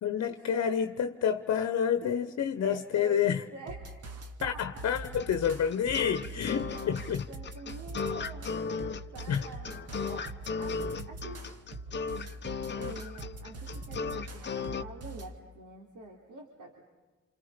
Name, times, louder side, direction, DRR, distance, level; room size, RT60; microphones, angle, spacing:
voice 1, 0.0-3.4 4.4-7.2 9.3-9.4, left 8 dB, 60° left, 1.1 m, -29 dB
voice 2, 2.6-3.9 4.4-4.9 6.7-7.0 7.3-11.4 12.7-16.9, right 3 dB, 85° right, 3.8 m, -46 dB
sound 1, 3.7-15.4, right 2 dB, 55° right, 2.1 m, -43 dB
sound 2, 5.2-14.8, left 5 dB, 35° left, 1.0 m, -36 dB
29.5 x 28.0 x 5.2 m
cardioid pair, 90°, 30 cm